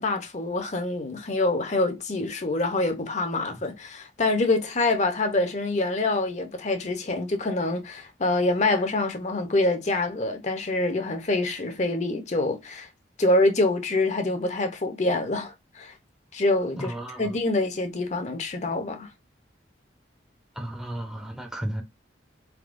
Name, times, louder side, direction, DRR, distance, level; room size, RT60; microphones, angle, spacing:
voice 1, 0.0-12.9 13.2-15.9 16.3-16.9 17.2-19.1, left 2 dB, 40° left, 0.6 m, -26 dB
voice 2, 16.8-17.4 20.6-21.8, right 1 dB, 5° right, 0.6 m, -34 dB
4.0 x 3.5 x 2.5 m
head